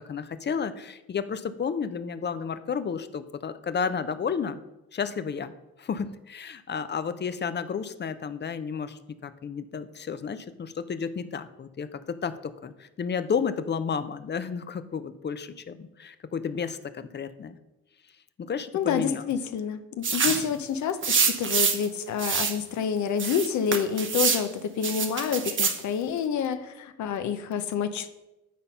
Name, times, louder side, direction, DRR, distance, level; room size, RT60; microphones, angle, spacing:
voice 1, 0.0-4.6 4.9-5.5 5.8-17.6 18.4-19.2 20.2-20.3, left 6 dB, 35° left, 12 dB, 0.6 m, -32 dB
voice 2, 18.7-28.1, left 7 dB, 70° left, 9 dB, 0.8 m, -28 dB
sound 1, 20.0-20.5 21.0-21.9 22.2-22.6 23.2-24.4 24.8-25.8, right 5 dB, 40° right, 0.9 m, -25 dB
9.3 x 4.2 x 5.4 m, 0.96 s
cardioid pair, 90°, 30 cm